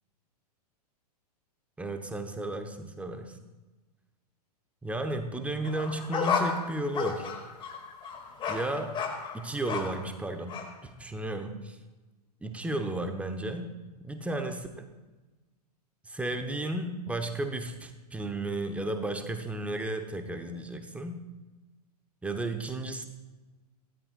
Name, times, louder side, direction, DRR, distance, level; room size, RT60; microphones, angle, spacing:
voice 1, 1.8-3.4 4.8-7.3 8.5-9.0 9.3-10.5 10.8-11.8 12.4-13.7 14.0-14.9 16.1-21.2 22.2-23.0, right 2 dB, 5° right, 6 dB, 1.0 m, -33 dB
sound 1, 5.6-10.1 10.5-10.7, left 5 dB, 25° left, 2.2 m, -33 dB
17.5 x 13.0 x 2.4 m, 1.2 s
figure-of-eight pair, 105°, 20 cm